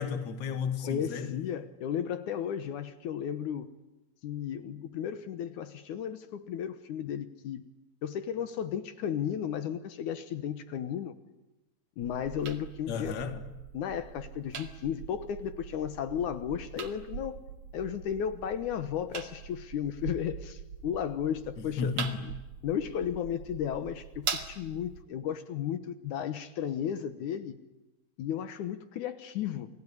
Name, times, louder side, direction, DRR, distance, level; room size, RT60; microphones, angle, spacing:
voice 1, 0.0-1.5 12.9-13.5 21.6-22.3, left 5 dB, 40° left, 2.3 m, -33 dB
voice 2, 0.8-3.7 4.2-7.6 8.0-11.1 12.0-13.2 13.7-17.4 17.7-21.9 22.6-27.6 28.2-29.7, left 9 dB, 75° left, 2.6 m, -34 dB
sound 1, 12.0-25.0, right 6 dB, 60° right, 3.3 m, -42 dB
29.5 x 19.5 x 10.0 m
omnidirectional pair, 3.6 m